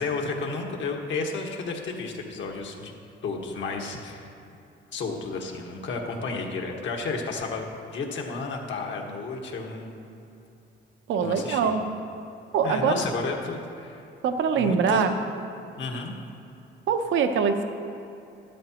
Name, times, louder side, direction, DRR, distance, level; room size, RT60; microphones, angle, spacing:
voice 1, 0.0-2.9 3.2-4.3 4.9-10.0 11.2-11.8 12.6-14.0 14.5-15.1 15.8-16.2, left 4 dB, 70° left, 1 dB, 1.6 m, -32 dB
voice 2, 11.1-11.8 12.5-12.9 14.2-15.1 16.9-17.6, right 6 dB, 75° right, 7 dB, 0.8 m, -23 dB
12.5 x 12.0 x 3.0 m, 2.8 s
cardioid pair, 90°, 20 cm